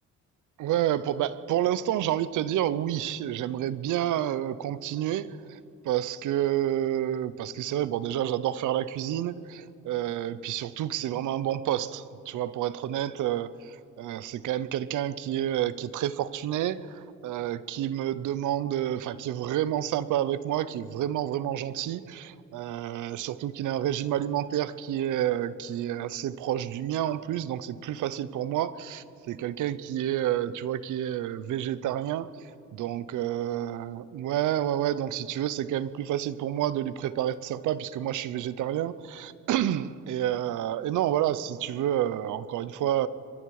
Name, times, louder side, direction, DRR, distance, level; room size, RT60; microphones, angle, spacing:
voice 1, 0.6-5.6 5.8-43.1, right 11 dB, 80° right, 0.8 m, -29 dB
26.0 x 23.5 x 4.9 m
cardioid pair, 90°, 30 cm